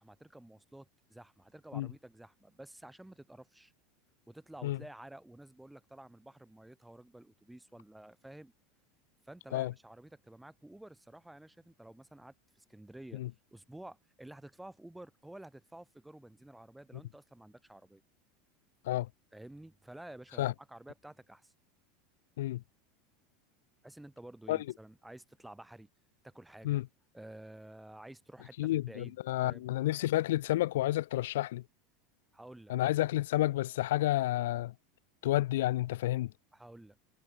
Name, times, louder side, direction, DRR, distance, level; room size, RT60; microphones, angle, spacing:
voice 1, 0.0-3.7 4.3-8.5 9.2-13.2 13.5-18.0 19.3-21.5 23.8-25.9 26.2-26.8 27.1-29.7 32.3-32.7 36.5-37.0, right 1 dB, 5° right, 1.9 m, -51 dB
voice 2, 28.6-31.6 32.7-34.7 35.2-36.3, left 15 dB, 90° left, 0.4 m, -30 dB
supercardioid pair, 155°, 0 cm